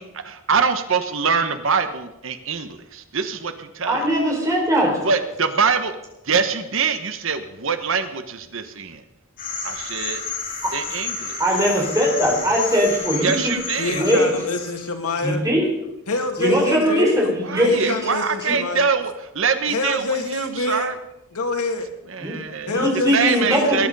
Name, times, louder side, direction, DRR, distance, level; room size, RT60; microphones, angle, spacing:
voice 1, 0.0-4.1 5.0-5.9 6.2-9.0 9.6-10.2 10.7-11.4 13.2-14.0 16.7-21.0 22.1-23.9, right 5 dB, 60° right, 9 dB, 1.1 m, -24 dB
voice 2, 3.9-5.0 10.6-10.7 11.4-13.5 13.9-14.3 15.2-15.7 16.4-17.9 18.5-18.6 22.2-22.4 22.7-23.9, equal, 15° right, -1 dB, 4.5 m, -20 dB
sound 1, 9.4-14.9, left 4 dB, 40° left, 6.5 m, -31 dB
voice 3, 13.8-15.4 16.1-17.2 17.6-18.9 19.7-20.9 21.3-21.9 22.7-23.8, left 3 dB, 90° left, 4 dB, 2.4 m, -26 dB
20.5 x 10.5 x 5.5 m, 0.93 s
head